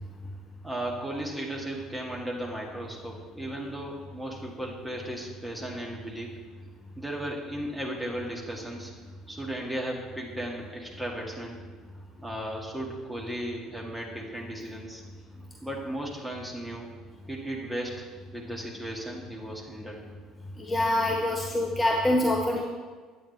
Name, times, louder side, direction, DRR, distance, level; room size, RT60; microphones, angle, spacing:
voice 1, 0.6-6.4 7.0-8.9 9.3-11.6 12.2-15.0 15.6-16.9 17.3-20.0, right 1 dB, 5° right, -2 dB, 2.0 m, -35 dB
voice 2, 20.6-22.6, left 1 dB, 20° left, 0 dB, 0.9 m, -25 dB
9.2 x 8.5 x 3.3 m, 1.5 s
figure-of-eight pair, 55°, 0 cm